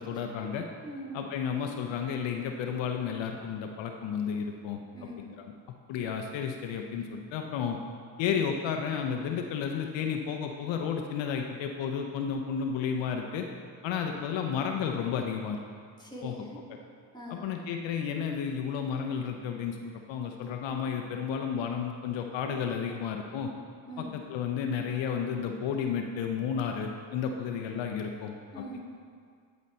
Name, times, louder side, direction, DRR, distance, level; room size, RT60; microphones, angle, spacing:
voice 1, 0.0-0.6 1.1-4.8 5.2-5.5 5.9-7.8 8.2-13.5 13.8-15.6 16.2-16.3 17.3-23.5 24.0-28.6, left 7 dB, 70° left, 3 dB, 0.7 m, -32 dB
voice 2, 0.8-1.1 4.9-5.2 16.0-16.6 17.1-17.5 23.9-24.2 28.5-28.8, equal, 10° left, -2 dB, 1.7 m, -42 dB
9.4 x 4.1 x 4.2 m, 2.1 s
supercardioid pair, 70°, 47 cm